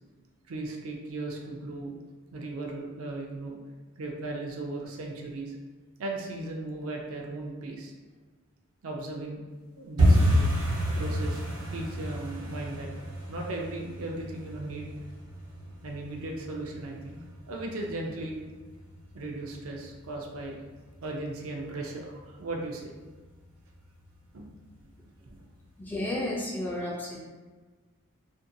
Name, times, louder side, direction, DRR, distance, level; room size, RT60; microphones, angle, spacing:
voice 1, 0.5-1.9 2.3-3.6 4.0-5.6 6.0-7.9 8.8-9.5 9.8-10.5 10.9-12.9 13.3-14.9 15.8-17.2 17.5-18.4 19.1-20.6 21.0-22.9 24.3-24.5 25.0-25.4, right 2 dB, 65° right, 0 dB, 0.4 m, -37 dB
sound 1, 10.0-20.7 20.9-21.7 21.9-22.2 22.5-22.9 23.1-23.3 23.8-24.3 24.6-24.7 25.2-25.3, equal, 90° right, 0.9 m, -30 dB
voice 2, 25.8-27.2, left 1 dB, 10° left, -4 dB, 0.3 m, -32 dB
2.6 x 2.2 x 2.6 m, 1.3 s
head